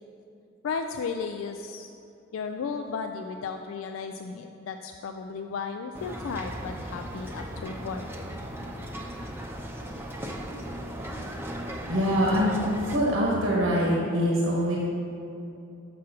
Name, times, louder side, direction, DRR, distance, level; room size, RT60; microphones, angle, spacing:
voice 1, 0.6-1.9 2.3-8.1, left 5 dB, 85° left, 5 dB, 0.4 m, -34 dB
sound 1, 5.9-13.0, right 1 dB, 10° right, 0.6 m, -37 dB
voice 2, 11.9-12.5 12.8-14.8, equal, 85° right, -3 dB, 1.1 m, -24 dB
6.1 x 6.0 x 5.8 m, 2.7 s
head